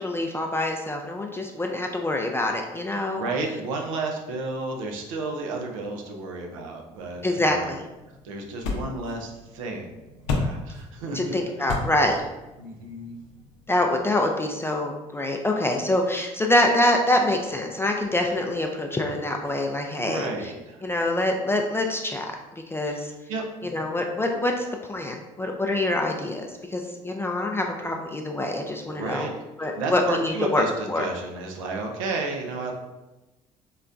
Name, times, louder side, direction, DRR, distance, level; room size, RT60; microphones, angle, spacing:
voice 1, 0.0-3.2 7.2-7.8 11.1-12.2 13.7-20.3 20.8-22.3 22.7-23.1 23.6-29.3 29.6-31.1, left 1 dB, 15° left, 2 dB, 0.4 m, -25 dB
voice 2, 3.1-7.7 8.2-11.7 12.6-13.2 20.0-20.9 22.8-23.9 28.9-29.3 29.6-32.7, right 3 dB, 90° right, 2 dB, 0.5 m, -32 dB
sound 1, 6.9-14.0, left 3 dB, 85° left, 0.5 m, -35 dB
3.9 x 2.1 x 2.4 m, 1.1 s
hypercardioid pair, 65°, 16 cm